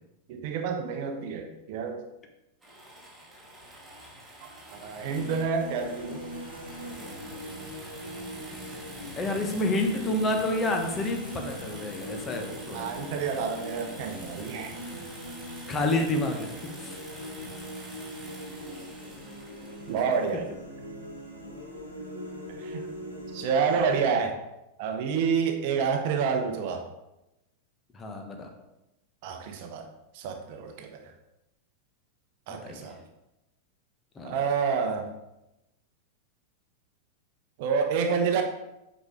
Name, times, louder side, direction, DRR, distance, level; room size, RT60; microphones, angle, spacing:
voice 1, 0.3-2.0 4.7-6.2 12.7-15.1 19.9-20.4 22.5-22.9 23.3-24.4 24.8-26.9 29.2-29.9 30.1-31.1 32.5-33.0 34.2-35.1 37.6-38.4, right 6 dB, 50° right, 5 dB, 0.9 m, -28 dB
sound 1, 2.6-20.3, right 1 dB, 10° right, 2.5 m, -46 dB
sound 2, 5.1-24.1, equal, 90° left, 1.7 m, -41 dB
voice 2, 9.2-12.9 15.7-16.5 16.8-17.0 27.9-28.5 32.5-32.9 34.1-34.4, left 1 dB, 20° left, 3 dB, 1.2 m, -29 dB
8.0 x 5.1 x 3.7 m, 0.92 s
figure-of-eight pair, 90°, 0 cm